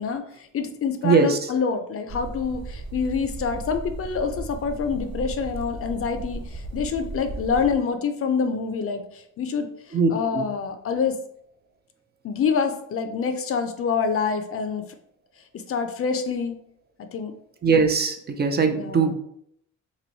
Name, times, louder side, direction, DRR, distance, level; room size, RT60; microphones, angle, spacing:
voice 1, 0.0-11.2 12.2-14.8 15.7-16.6 17.1-17.3 18.8-19.1, left 5 dB, 50° left, 7 dB, 0.5 m, -26 dB
voice 2, 1.0-1.4 9.9-10.5 17.6-19.1, right 4 dB, 35° right, 6 dB, 0.5 m, -20 dB
sound 1, 2.1-7.7, right 2 dB, 55° right, 1.1 m, -35 dB
3.1 x 2.6 x 4.0 m, 0.70 s
cardioid pair, 90°, 30 cm